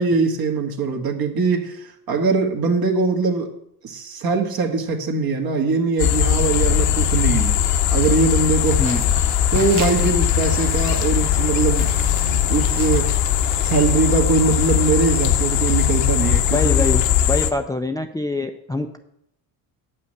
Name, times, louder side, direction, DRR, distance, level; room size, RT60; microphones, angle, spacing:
voice 1, 0.0-3.5 3.8-7.6 7.9-9.0 9.5-11.9 12.5-13.2 13.6-16.9, right 4 dB, 50° right, 4 dB, 1.7 m, -21 dB
sound 1, 6.0-17.5, left 9 dB, 65° left, 1.0 m, -20 dB
sound 2, 8.6-13.6, right 5 dB, 90° right, 1.6 m, -36 dB
voice 2, 16.5-19.0, left 2 dB, 10° left, 6 dB, 0.5 m, -24 dB
8.6 x 5.6 x 6.6 m, 0.78 s
supercardioid pair, 85°, 46 cm